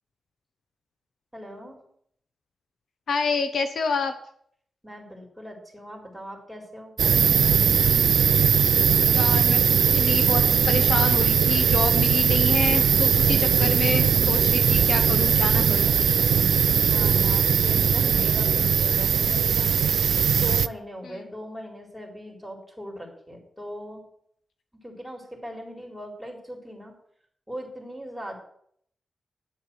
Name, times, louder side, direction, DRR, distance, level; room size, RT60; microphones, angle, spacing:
voice 1, 1.3-1.8 4.8-7.6 16.9-19.7 20.4-24.0 24.8-26.9 27.5-28.4, equal, ahead, 0 dB, 4.1 m, -40 dB
voice 2, 3.1-4.1 9.1-15.9 21.0-21.3, left 4 dB, 75° left, 8 dB, 1.0 m, -28 dB
sound 1, 7.0-20.7, right 7 dB, 80° right, 0.4 m, -20 dB
10.0 x 7.1 x 7.7 m, 0.66 s
wide cardioid pair, 100°, 0 cm